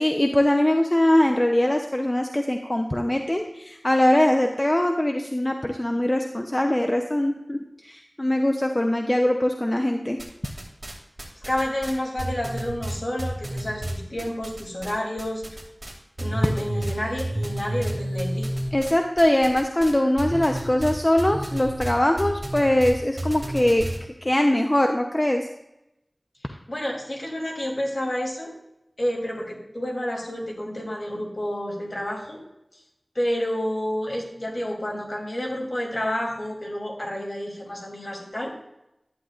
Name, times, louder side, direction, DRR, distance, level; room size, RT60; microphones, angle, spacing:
voice 1, 0.0-10.2 18.7-23.9 24.2-25.5, left 1 dB, 30° left, 4 dB, 0.7 m, -22 dB
sound 1, 10.2-10.9 11.2-14.9 15.2-24.0, right 1 dB, 55° right, 2.5 m, -30 dB
voice 2, 11.4-15.6 16.2-18.5 26.5-28.5 29.0-32.4 33.1-38.5, left 1 dB, 55° left, -2 dB, 3.1 m, -29 dB
11.0 x 9.7 x 2.5 m, 0.87 s
wide cardioid pair, 50°, 0 cm